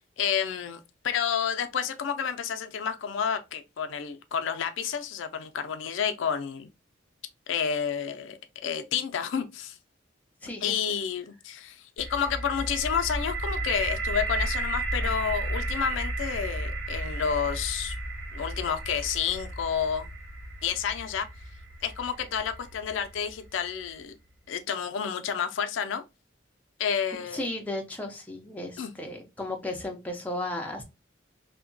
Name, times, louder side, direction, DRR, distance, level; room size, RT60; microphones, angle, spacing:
voice 1, 0.2-6.7 7.5-9.8 10.6-17.9 18.3-20.1 20.6-21.3 21.8-24.1 24.5-26.0 26.8-27.5 28.8-28.9, left 7 dB, 80° left, 0.4 m, -30 dB
voice 2, 10.4-10.8 27.3-30.8, left 1 dB, 10° left, 0.5 m, -34 dB
sound 1, 12.0-23.8, right 2 dB, 60° right, 1.6 m, -34 dB
2.8 x 2.2 x 2.5 m
head